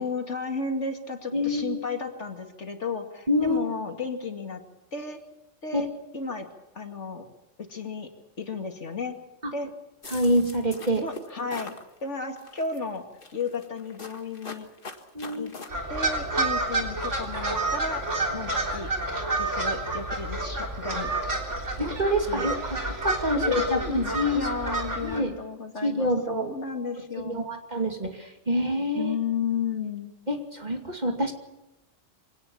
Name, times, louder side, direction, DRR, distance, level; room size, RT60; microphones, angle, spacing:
voice 1, 0.0-4.6 4.9-5.2 5.6-5.9 6.1-6.5 6.7-7.2 7.6-8.1 8.4-9.2 9.5-9.7 11.0-11.7 12.0-13.0 13.3-14.7 15.3-15.5 15.9-18.0 18.3-18.9 19.1-21.1 22.3-22.5 23.4-27.5 29.0-30.1, left 5 dB, 75° left, 4 dB, 2.7 m, -33 dB
voice 2, 1.3-1.8 3.3-3.6 5.7-5.9 9.4-9.5 10.1-11.0 15.1-15.5 21.8-24.5 25.0-25.4 25.8-26.5 27.2-29.2 30.3-31.3, equal, 35° right, 3 dB, 2.7 m, -26 dB
sound 1, 10.0-11.8 12.4-12.8 13.2-15.7, left 3 dB, 45° left, 1.9 m, -42 dB
sound 2, 15.7-25.2, right 2 dB, 80° right, 4.2 m, -29 dB
25.0 x 18.0 x 7.2 m, 0.94 s
omnidirectional pair, 1.2 m